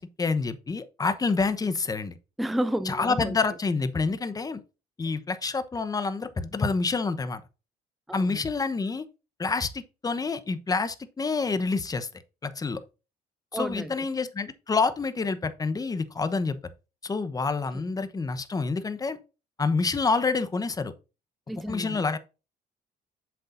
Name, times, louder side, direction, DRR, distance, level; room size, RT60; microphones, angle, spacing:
voice 1, 0.0-2.2 2.9-4.6 5.0-7.4 8.1-9.0 9.4-12.1 12.4-12.8 13.5-16.6 17.0-19.2 19.6-20.9 21.7-22.2, left 4 dB, 20° left, 0.9 m, -27 dB
voice 2, 2.4-3.4 8.1-8.5 13.5-13.9 17.7-17.8 21.5-22.2, right 1 dB, ahead, 0.5 m, -31 dB
7.8 x 7.0 x 2.6 m
cardioid pair, 110°, 17 cm